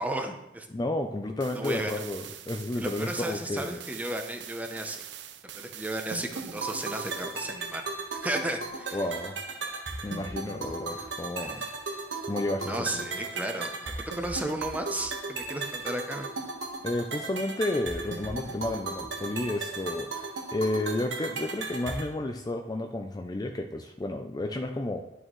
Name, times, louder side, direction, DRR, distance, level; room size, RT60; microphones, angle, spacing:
voice 1, 0.0-0.7 1.5-2.0 2.8-5.0 5.6-7.9 8.2-9.0 11.0-11.1 11.4-11.7 12.6-16.3, right 1 dB, 10° right, 5 dB, 0.7 m, -34 dB
voice 2, 0.7-3.8 8.9-9.3 10.0-11.6 12.3-13.0 16.8-25.0, left 1 dB, 20° left, 4 dB, 0.4 m, -32 dB
sound 1, 1.4-7.4, right 11 dB, 65° right, 0.5 m, -44 dB
sound 2, 6.1-22.1, right 3 dB, 85° right, 1.4 m, -36 dB
11.0 x 6.3 x 3.1 m, 0.91 s
head